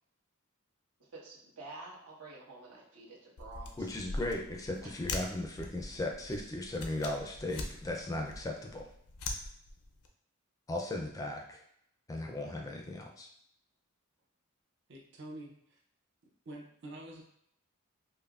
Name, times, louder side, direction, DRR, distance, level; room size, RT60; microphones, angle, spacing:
voice 1, 1.1-3.9 4.8-4.9, right 3 dB, 90° right, -5 dB, 1.2 m, -49 dB
sound 1, 3.4-10.1, left 2 dB, 90° left, 0.5 m, -42 dB
voice 2, 3.8-8.9 10.7-11.6 12.1-13.3, left 1 dB, 15° left, 2 dB, 0.3 m, -37 dB
voice 3, 14.9-15.8 16.5-17.2, right 1 dB, 55° right, 0 dB, 0.6 m, -47 dB
5.3 x 2.1 x 2.3 m, 0.71 s
head